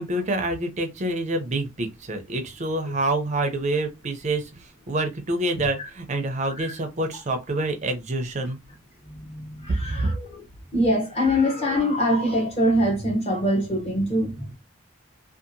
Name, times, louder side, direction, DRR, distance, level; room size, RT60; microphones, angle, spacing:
voice 1, 0.0-8.6 9.8-10.1, right 2 dB, 30° right, 0.4 m, -27 dB
voice 2, 9.1-10.4 10.7-14.5, equal, 30° left, 0.7 m, -24 dB
2.7 x 2.3 x 2.6 m
head